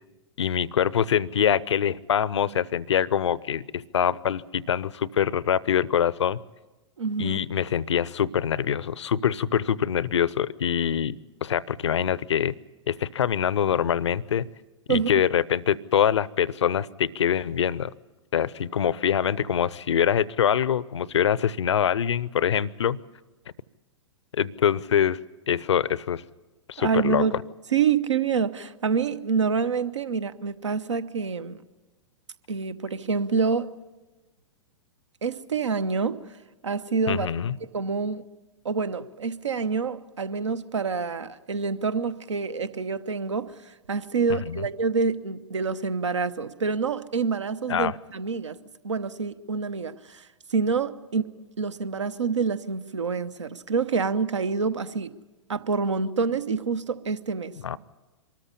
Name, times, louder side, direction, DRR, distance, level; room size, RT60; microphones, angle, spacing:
voice 1, 0.4-6.4 7.2-11.2 11.4-12.5 12.9-14.5 14.9-17.9 18.3-23.0 24.3-25.2 25.5-26.2 26.7-27.4 37.1-37.6 44.5-44.6 47.7-48.0 57.6-57.8, left 9 dB, 65° left, 0.6 m, -24 dB
voice 2, 7.0-7.4 14.9-15.1 26.8-27.3 27.7-31.6 32.5-33.7 35.2-36.4 36.6-37.3 37.7-38.2 38.6-48.6 48.8-51.3 51.6-55.1 55.5-57.5, right 5 dB, 75° right, 0.9 m, -27 dB
24.0 x 13.5 x 9.9 m
figure-of-eight pair, 105°, 16 cm